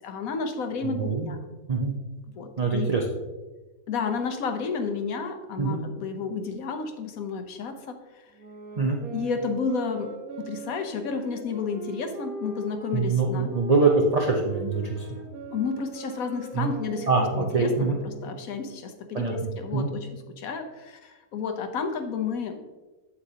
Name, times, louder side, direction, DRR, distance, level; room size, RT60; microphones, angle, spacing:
voice 1, 0.0-1.4 2.3-2.9 3.9-8.2 9.1-13.6 15.5-20.1 20.4-22.6, left 5 dB, 70° left, 6 dB, 1.2 m, -31 dB
voice 2, 0.8-1.4 1.7-1.9 2.6-3.1 5.6-5.8 8.8-9.0 12.9-15.2 16.5-16.7 17.1-18.0 19.1-19.3 19.7-19.9, right 4 dB, 35° right, -1 dB, 0.6 m, -24 dB
sound 1, 8.4-13.0 13.5-18.5, right 3 dB, 70° right, 1.5 m, -40 dB
8.1 x 7.9 x 2.8 m, 1.2 s
omnidirectional pair, 1.6 m